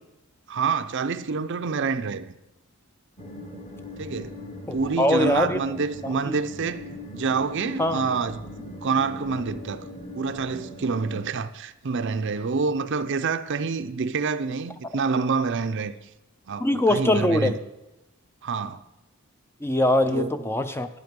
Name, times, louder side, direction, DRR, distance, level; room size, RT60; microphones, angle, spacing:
voice 1, 0.5-2.4 4.0-4.3 4.7-6.8 7.1-9.8 10.1-15.9 16.5-17.5 18.4-18.8 20.1-20.3, right 5 dB, 55° right, 0.5 m, -27 dB
sound 1, 3.2-11.3, left 2 dB, 30° left, 1.2 m, -40 dB
voice 2, 4.7-5.6 6.0-6.4 7.8-8.0 16.6-17.6 19.6-20.9, left 1 dB, 10° left, 0.4 m, -22 dB
10.5 x 10.0 x 5.3 m
head